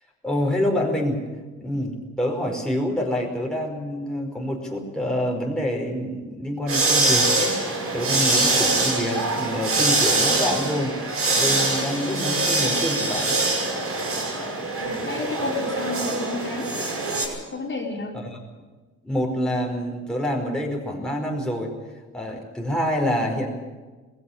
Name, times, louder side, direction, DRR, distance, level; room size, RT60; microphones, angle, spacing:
voice 1, 0.2-1.2 1.6-7.6 7.9-11.0 11.3-13.4 18.2-18.4 19.0-21.7 22.1-23.5, equal, ahead, 0 dB, 5.0 m, -26 dB
sound 1, 6.7-17.3, right 2 dB, 50° right, 7.7 m, -23 dB
voice 2, 14.7-16.7 17.5-18.2, left 3 dB, 40° left, -1 dB, 4.5 m, -31 dB
20.0 x 16.0 x 8.7 m, 1.3 s
cardioid pair, 90°, 30 cm